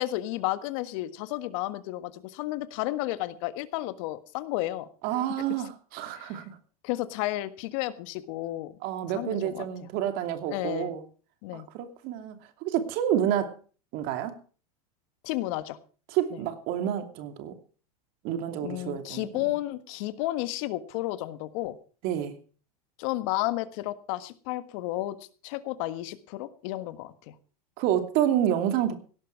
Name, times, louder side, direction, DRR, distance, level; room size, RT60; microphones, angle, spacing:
voice 1, 0.0-4.9 6.2-6.4 6.8-8.8 9.1-9.9 10.5-11.0 11.4-11.7 15.2-15.8 16.3-16.4 18.6-21.8 23.0-25.2 25.4-27.3, left 16 dB, 55° left, 12 dB, 1.6 m, -32 dB
voice 2, 5.0-6.6 8.8-11.0 11.5-13.5 13.9-14.4 16.1-17.6 18.2-19.3 22.0-22.4 27.8-28.9, right 10 dB, 50° right, 8 dB, 2.8 m, -29 dB
17.5 x 11.5 x 4.7 m, 0.39 s
hypercardioid pair, 115°, 19 cm